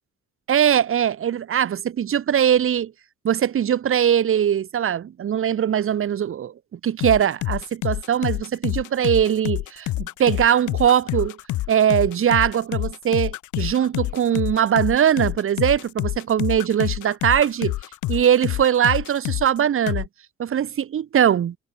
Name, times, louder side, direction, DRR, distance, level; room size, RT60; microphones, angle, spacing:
voice 1, 0.5-2.9 3.2-11.4 11.7-17.8 18.1-20.1 20.4-21.6, right 9 dB, 45° right, 0.9 m, -21 dB
sound 1, 7.0-19.6 19.9-20.1, left 16 dB, 75° left, 0.7 m, -27 dB
cardioid pair, 90°, 30 cm